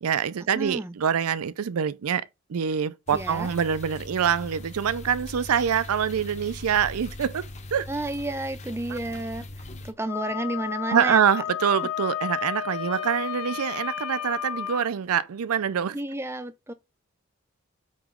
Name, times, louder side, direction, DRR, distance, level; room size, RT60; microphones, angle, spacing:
voice 1, 0.0-7.9 8.9-9.0 10.9-16.0, right 8 dB, 85° right, 0.4 m, -25 dB
voice 2, 0.5-1.0 3.1-3.5 7.9-11.2 15.9-16.7, right 1 dB, 10° right, 0.4 m, -31 dB
sound 1, 3.1-9.9, left 1 dB, 30° left, 0.8 m, -40 dB
Wind instrument woodwind instrument, 10.1-14.8, left 10 dB, 85° left, 1.1 m, -32 dB
8.4 x 3.0 x 3.7 m
head